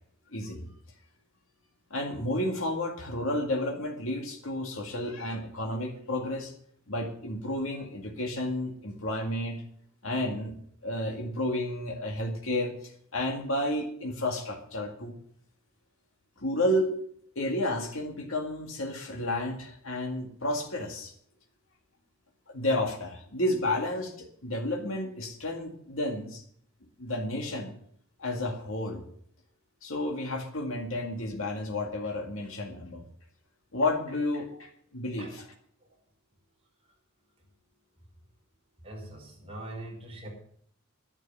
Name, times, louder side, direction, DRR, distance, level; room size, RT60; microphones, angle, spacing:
voice 1, 0.3-0.7 1.9-6.5 6.9-9.6 10.0-10.5 10.8-15.2 16.4-16.9 17.4-21.1 22.5-24.1 24.4-26.4 27.0-27.7 28.2-29.0 29.8-33.0 33.7-35.4, left 1 dB, 90° left, 1 dB, 2.1 m, -31 dB
voice 2, 38.8-40.3, right 1 dB, 30° right, -1 dB, 5.1 m, -42 dB
11.0 x 11.0 x 6.9 m, 0.64 s
head